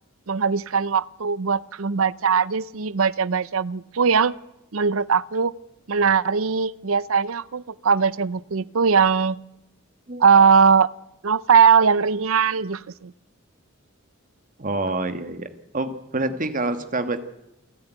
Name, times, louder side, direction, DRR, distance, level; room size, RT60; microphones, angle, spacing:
voice 1, 0.3-4.3 4.7-5.5 5.9-9.4 10.2-10.9 11.2-13.1, right 6 dB, 80° right, 20 dB, 0.7 m, -20 dB
voice 2, 14.6-15.5 15.7-17.2, right 2 dB, 40° right, 10 dB, 1.7 m, -27 dB
28.5 x 10.5 x 9.2 m, 0.88 s
head